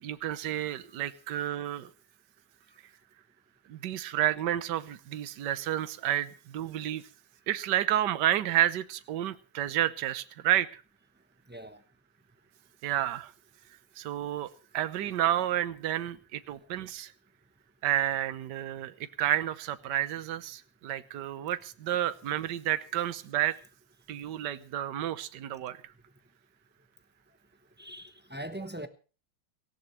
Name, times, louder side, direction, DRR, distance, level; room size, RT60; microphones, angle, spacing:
voice 1, 0.0-1.9 3.7-7.0 7.5-10.8 12.8-13.3 14.0-17.1 17.8-23.6 24.1-25.8, right 12 dB, 60° right, 1.5 m, -30 dB
voice 2, 11.5-11.8 27.8-28.9, right 1 dB, 15° right, 0.4 m, -41 dB
18.0 x 17.0 x 3.2 m
omnidirectional pair, 2.2 m